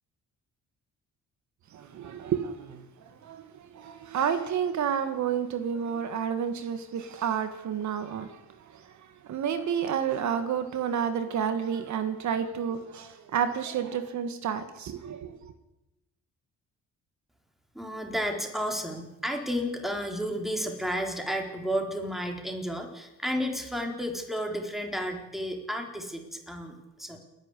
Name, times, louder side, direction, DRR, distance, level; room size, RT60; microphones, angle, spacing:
voice 1, 1.7-15.5, right 8 dB, 70° right, 1.7 m, -30 dB
voice 2, 17.7-27.2, equal, ahead, 4.1 m, -32 dB
29.5 x 11.0 x 8.2 m
cardioid pair, 90°, 30 cm